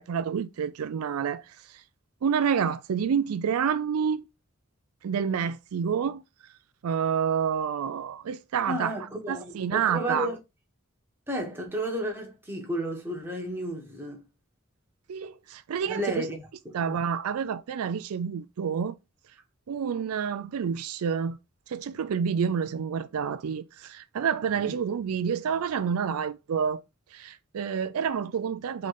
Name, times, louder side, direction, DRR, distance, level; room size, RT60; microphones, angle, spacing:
voice 1, 0.0-1.8 2.2-4.3 5.0-6.2 6.8-8.9 9.3-10.3 15.1-16.3 16.7-18.9 19.7-21.4 21.7-26.8 27.1-28.9, right 7 dB, 90° right, 0.4 m, -28 dB
voice 2, 8.7-10.4 11.3-14.2 15.9-16.5 16.8-17.0 24.5-24.7, right 1 dB, 10° right, 1.2 m, -32 dB
3.7 x 3.3 x 3.9 m
head